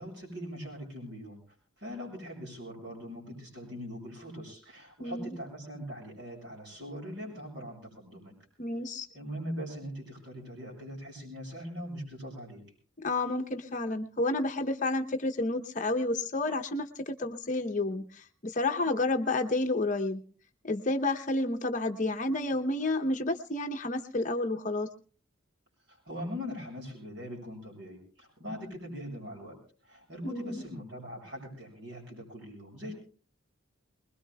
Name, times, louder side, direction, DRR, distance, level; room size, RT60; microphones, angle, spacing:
voice 1, 0.0-1.4 1.8-8.3 9.1-12.6 25.9-29.6 29.8-32.9, equal, 60° right, 0 dB, 7.8 m, -41 dB
voice 2, 5.0-5.3 8.6-9.1 13.0-20.2 20.6-24.9 30.2-30.6, left 2 dB, 40° left, 5 dB, 0.8 m, -30 dB
23.5 x 21.0 x 2.2 m, 0.41 s
head